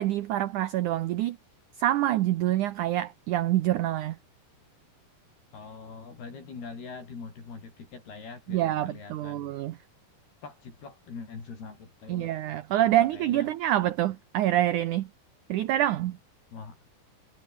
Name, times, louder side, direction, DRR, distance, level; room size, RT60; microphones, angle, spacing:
voice 1, 0.0-1.4 1.8-4.2 8.5-9.8 12.1-15.1 15.5-16.2, right 13 dB, 80° right, 1.8 m, -26 dB
voice 2, 5.5-9.6 10.4-12.3 12.9-13.5 16.5-16.8, left 4 dB, 70° left, 8.4 m, -43 dB
omnidirectional pair, 4.6 m